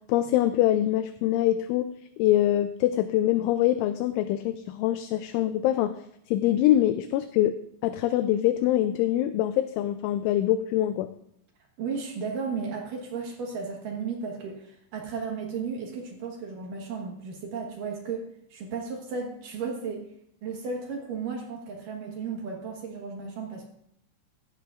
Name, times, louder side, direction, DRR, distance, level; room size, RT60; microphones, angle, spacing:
voice 1, 0.1-1.9 2.2-5.9 6.3-7.5 7.8-11.1, left 13 dB, 85° left, 10 dB, 2.8 m, -24 dB
voice 2, 11.8-20.1 20.4-23.7, right 5 dB, 70° right, 1 dB, 2.1 m, -34 dB
15.5 x 12.0 x 2.5 m, 0.74 s
omnidirectional pair, 5.7 m